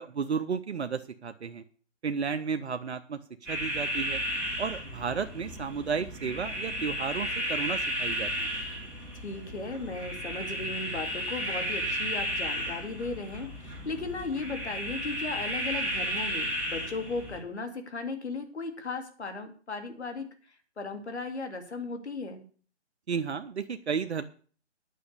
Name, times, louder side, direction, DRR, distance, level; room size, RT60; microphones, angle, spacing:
voice 1, 0.0-1.6 2.0-3.2 3.5-4.2 4.6-8.5 23.1-24.2, right 6 dB, 70° right, 9 dB, 0.8 m, -33 dB
sound 1, 3.5-17.4, equal, 5° right, 2.6 m, -33 dB
voice 2, 9.2-20.3 20.8-22.4, left 3 dB, 70° left, 6 dB, 2.6 m, -36 dB
9.5 x 6.3 x 8.2 m, 0.42 s
figure-of-eight pair, 140°, 35 cm